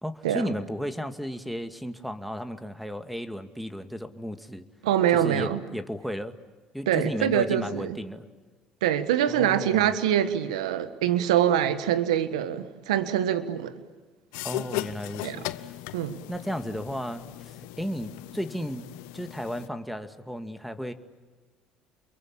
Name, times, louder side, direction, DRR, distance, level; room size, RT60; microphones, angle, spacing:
voice 1, 0.0-4.6 5.1-6.3 6.7-8.2 9.3-9.9 14.4-15.7 16.3-18.8 19.1-20.9, equal, ahead, 2.2 m, -34 dB
voice 2, 4.8-5.6 6.9-8.0 8.8-13.7 15.2-15.4 15.9-16.2, right 10 dB, 90° right, 1.5 m, -24 dB
sound 1, 14.3-19.7, left 17 dB, 80° left, 0.8 m, -37 dB
29.5 x 23.0 x 8.7 m
hypercardioid pair, 70°, 3 cm